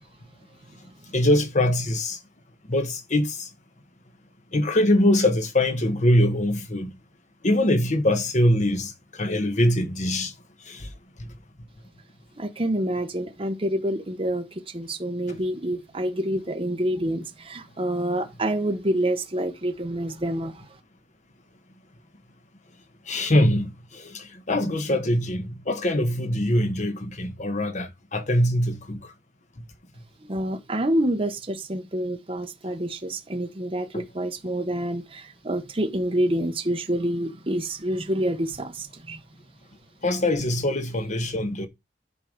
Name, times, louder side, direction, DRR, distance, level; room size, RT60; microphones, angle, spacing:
voice 1, 1.1-2.2 2.7-3.5 4.5-6.9 7.4-10.3 10.7-10.9 11.2-11.3 23.1-29.0 33.9-34.0 40.0-41.7, left 1 dB, 45° left, 1.2 m, -23 dB
voice 2, 12.4-20.7 30.2-39.2, right 1 dB, 30° right, 1.1 m, -27 dB
10.5 x 4.7 x 5.2 m
head